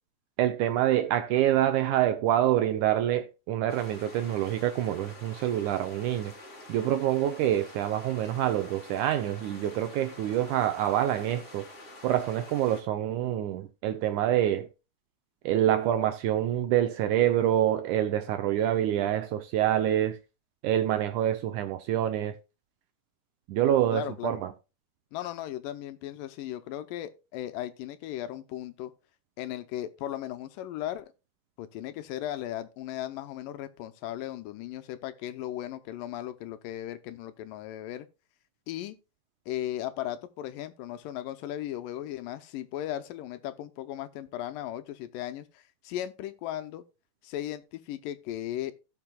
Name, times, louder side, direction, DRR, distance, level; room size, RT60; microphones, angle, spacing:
voice 1, 0.4-6.3 6.7-11.7 12.0-14.7 15.5-20.2 20.6-22.3 23.5-24.5, right 12 dB, 80° right, 1.9 m, -26 dB
sound 1, 3.7-12.8, left 1 dB, 25° left, 1.6 m, -48 dB
voice 2, 23.9-24.4 25.1-28.9 29.4-31.1 31.6-38.1 38.7-39.0 39.5-46.8 47.2-48.7, left 12 dB, 85° left, 2.3 m, -36 dB
17.0 x 5.9 x 2.2 m
omnidirectional pair, 3.9 m